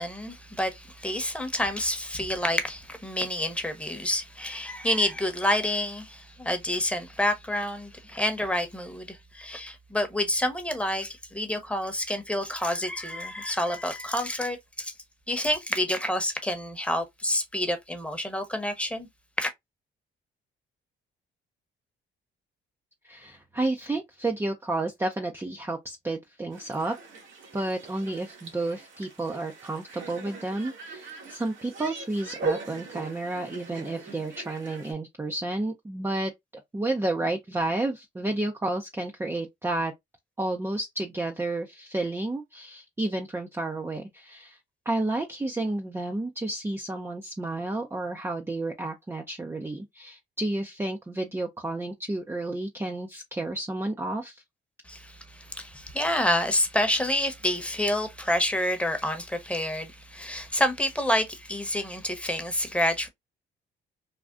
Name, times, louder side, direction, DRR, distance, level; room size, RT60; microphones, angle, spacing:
voice 1, 0.0-14.9 15.3-19.1 19.4-19.5 54.9-63.1, left 1 dB, 5° left, 0.9 m, -28 dB
voice 2, 23.0-26.9 27.5-36.3 36.7-39.9 40.4-44.6 44.9-54.4, right 2 dB, 10° right, 0.5 m, -31 dB
sound 1, 26.5-34.9, right 4 dB, 75° right, 1.5 m, -39 dB
3.5 x 2.3 x 2.4 m
cardioid pair, 90°, 20 cm